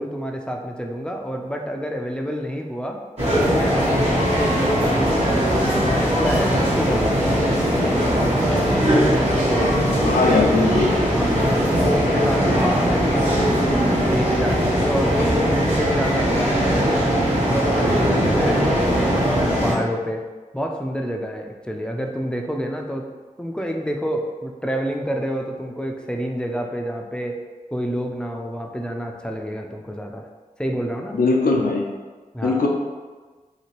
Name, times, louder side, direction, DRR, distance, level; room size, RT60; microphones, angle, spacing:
voice 1, 0.0-3.0 3.4-7.4 7.9-8.3 9.4-9.8 11.1-13.3 13.6-19.2 19.5-20.2 20.5-23.1 23.4-27.4 27.7-30.3 30.6-31.2 32.3-32.7, equal, 5° left, 2 dB, 0.4 m, -28 dB
sound 1, 3.2-19.7, equal, 45° right, 1.2 m, -20 dB
voice 2, 10.0-11.0 31.1-31.9 32.4-32.7, left 3 dB, 80° left, 0 dB, 0.5 m, -19 dB
2.9 x 2.9 x 2.9 m, 1.4 s
cardioid pair, 40°, 15 cm